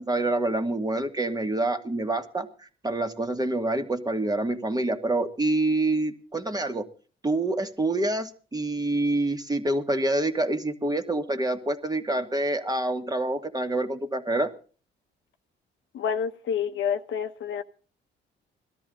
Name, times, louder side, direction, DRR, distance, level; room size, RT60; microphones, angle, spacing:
voice 1, 0.0-2.5 2.8-6.9 7.2-14.5, right 2 dB, 20° right, 1.8 m, -27 dB
voice 2, 15.9-17.6, left 7 dB, 75° left, 1.2 m, -28 dB
18.5 x 13.0 x 3.8 m
cardioid pair, 90°, 20 cm